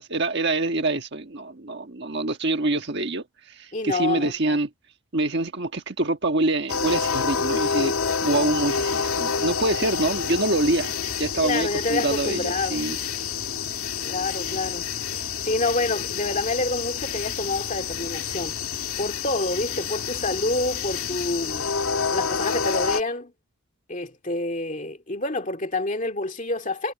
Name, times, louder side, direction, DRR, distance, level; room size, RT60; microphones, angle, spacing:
voice 1, 0.0-4.7 5.1-7.9 8.2-13.0, right 2 dB, 50° right, 1.5 m, -25 dB
voice 2, 3.7-4.6 11.4-12.9 14.0-18.5 19.0-21.7 22.1-23.3 23.9-26.9, left 2 dB, 35° left, 2.3 m, -28 dB
sound 1, 6.7-23.0, left 6 dB, 75° left, 2.0 m, -28 dB
head